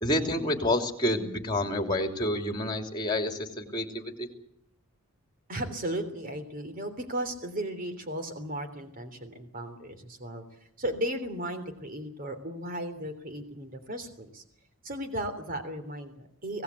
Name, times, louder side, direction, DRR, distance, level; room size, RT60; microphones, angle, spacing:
voice 1, 0.0-4.3, left 1 dB, 20° left, 5 dB, 3.1 m, -29 dB
voice 2, 5.5-10.4 10.8-14.4 14.8-16.6, right 1 dB, 40° right, 8 dB, 3.3 m, -35 dB
25.5 x 18.0 x 8.4 m, 0.75 s
head